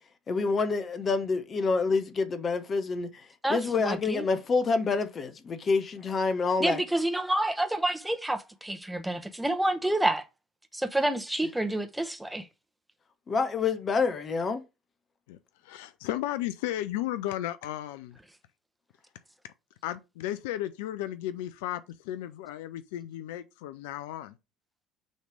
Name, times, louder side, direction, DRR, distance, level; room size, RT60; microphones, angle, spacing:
voice 1, 0.3-6.8 13.3-14.6, left 4 dB, 35° left, 1.0 m, -27 dB
voice 2, 3.4-4.2 6.6-10.2 10.7-12.5, right 1 dB, 5° right, 1.0 m, -28 dB
voice 3, 15.6-18.2 19.8-24.3, left 13 dB, 70° left, 0.4 m, -34 dB
6.4 x 3.3 x 4.9 m
figure-of-eight pair, 60°, 0 cm